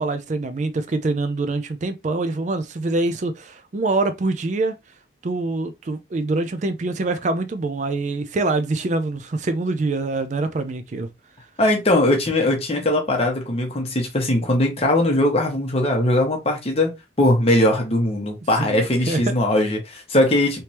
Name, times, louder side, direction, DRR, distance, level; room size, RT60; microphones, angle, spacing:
voice 1, 0.0-4.8 5.2-11.1 18.6-19.3, right 2 dB, 40° right, 0.4 m, -25 dB
voice 2, 11.6-20.6, left 1 dB, 35° left, 1.0 m, -20 dB
3.3 x 3.1 x 2.8 m
head